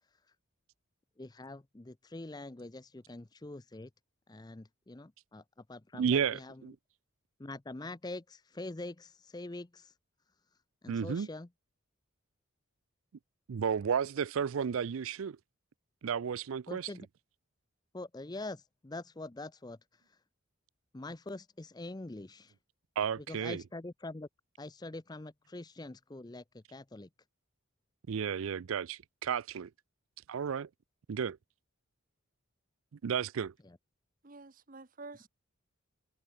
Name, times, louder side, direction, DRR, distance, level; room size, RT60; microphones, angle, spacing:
voice 1, 1.2-3.9 4.3-5.4 5.7-6.6 7.4-9.9 10.8-11.5 16.7-17.1 17.9-19.8 20.9-22.5 23.2-24.3 24.6-27.1 33.6-33.8, left 2 dB, 20° left, 0.5 m, -44 dB
voice 2, 6.0-6.7 10.9-11.3 13.5-15.4 16.0-16.9 23.0-23.6 28.1-29.7 30.3-30.7 31.1-31.4 33.0-33.5, right 7 dB, 75° right, 0.4 m, -32 dB
voice 3, 34.2-35.3, right 3 dB, 40° right, 1.0 m, -49 dB
head